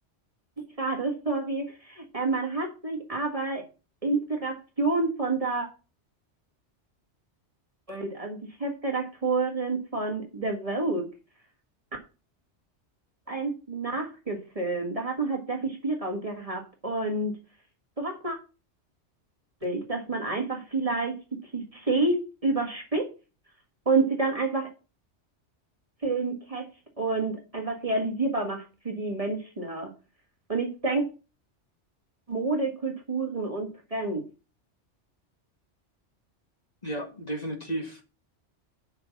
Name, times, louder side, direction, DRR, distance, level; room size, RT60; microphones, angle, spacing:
voice 1, 0.6-3.7 4.0-5.7 7.9-11.1 13.3-17.3 18.0-18.4 19.6-21.2 21.5-23.1 23.9-24.7 26.0-26.6 27.0-29.9 30.5-31.0 32.3-34.3, right 3 dB, 30° right, 2 dB, 1.7 m, -29 dB
voice 2, 36.8-38.0, right 1 dB, 35° left, 3 dB, 1.9 m, -33 dB
6.6 x 5.9 x 7.1 m, 0.33 s
omnidirectional pair, 1.2 m